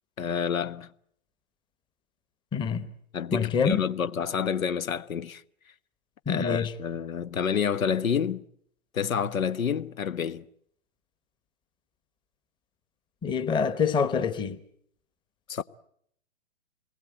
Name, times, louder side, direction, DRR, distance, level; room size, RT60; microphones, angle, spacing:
voice 1, 0.2-0.9 3.1-5.4 6.3-8.4 8.9-10.5 15.5-15.6, left 7 dB, 75° left, 1.2 m, -28 dB
voice 2, 2.5-2.9 3.3-3.8 6.3-6.7 13.2-14.6, left 6 dB, 10° left, 1.1 m, -26 dB
27.5 x 20.5 x 8.9 m
hypercardioid pair, 130°, 41 cm